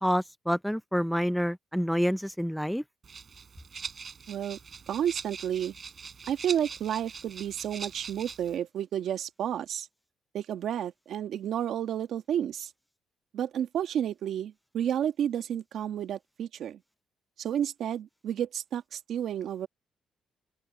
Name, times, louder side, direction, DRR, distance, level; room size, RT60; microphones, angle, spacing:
voice 1, 0.0-2.8, equal, ahead, 0.5 m, -28 dB
Rattle (instrument), 3.0-8.6, right 6 dB, 45° right, 4.9 m, -42 dB
voice 2, 4.3-4.6 4.9-5.7 6.3-9.9 10.3-12.7 13.3-16.8 17.4-19.7, right 10 dB, 70° right, 1.6 m, -31 dB
open air
cardioid pair, 90°, 0 cm